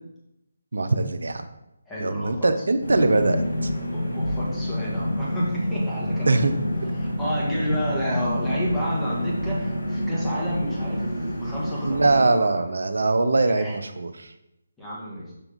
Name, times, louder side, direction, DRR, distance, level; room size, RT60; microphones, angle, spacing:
voice 1, 0.7-1.4 2.0-3.7 6.3-6.5 11.8-14.3, right 3 dB, 70° right, 9 dB, 0.7 m, -22 dB
voice 2, 1.9-2.5 3.9-6.6 6.9-12.7 13.6-13.7 14.8-15.3, equal, 5° left, -8 dB, 1.9 m, -31 dB
sound 1, 2.8-12.2, left 1 dB, 90° left, 2.1 m, -28 dB
6.9 x 3.5 x 5.3 m, 0.88 s
figure-of-eight pair, 155°, 0 cm